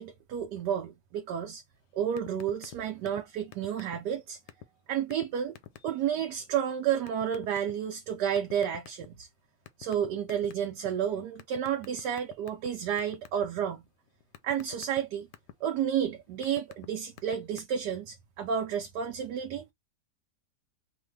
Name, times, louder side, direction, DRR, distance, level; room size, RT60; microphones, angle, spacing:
voice 1, 0.0-1.6 1.9-4.4 4.9-5.6 5.8-9.3 9.8-13.8 14.4-15.3 15.6-19.7, right 9 dB, 80° right, 1.2 m, -31 dB
sound 1, 2.2-2.8 3.1-3.2 3.5-4.2 4.5-4.7 5.1-5.2 5.6-5.9 7.1-7.7 8.4-9.2 9.7-10.9 11.4-12.7 13.0-13.5 13.9-15.5 16.1-16.9 17.1-17.6, left 12 dB, 80° left, 1.1 m, -46 dB
3.1 x 2.2 x 3.1 m
omnidirectional pair, 1.8 m